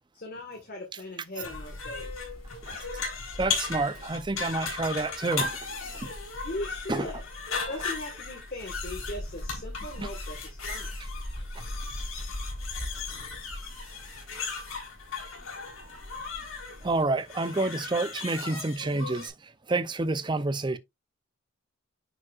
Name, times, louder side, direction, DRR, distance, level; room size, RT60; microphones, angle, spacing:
voice 1, 0.1-2.2 6.4-7.2 7.7-11.0, left 1 dB, 45° left, 1.6 m, -39 dB
sound 1, 1.4-19.3, left 5 dB, 75° left, 3.7 m, -37 dB
sound 2, 1.5-17.0, equal, 5° left, 1.5 m, -42 dB
voice 2, 3.4-6.1 6.9-7.1 10.0-10.1 11.6-11.7 16.8-20.8, right 2 dB, 20° right, 0.5 m, -29 dB
9.6 x 5.2 x 2.4 m
head